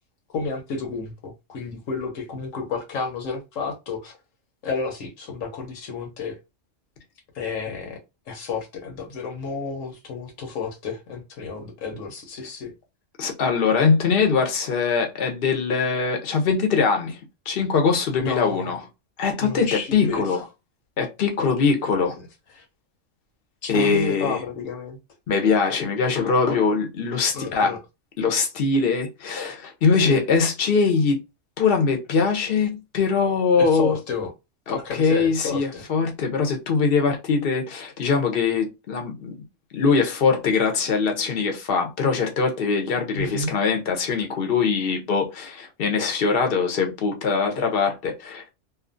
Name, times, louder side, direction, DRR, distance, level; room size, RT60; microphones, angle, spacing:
voice 1, 0.3-4.2 4.6-6.4 7.3-8.0 8.3-12.7 18.2-18.8 19.4-20.2 21.4-21.5 21.9-22.1 22.5-22.6 23.6-25.0 27.3-27.8 30.0-30.2 33.6-34.3 34.7-35.9 43.1-43.5, left 4 dB, 80° left, 1.2 m, -31 dB
voice 2, 13.2-17.2 17.5-18.8 19.2-20.4 21.0-22.2 23.7-24.4 25.3-27.8 28.2-31.2 31.6-34.0 34.7-39.4 39.7-48.5, left 5 dB, 55° left, 0.8 m, -22 dB
2.5 x 2.4 x 2.4 m
omnidirectional pair, 1.3 m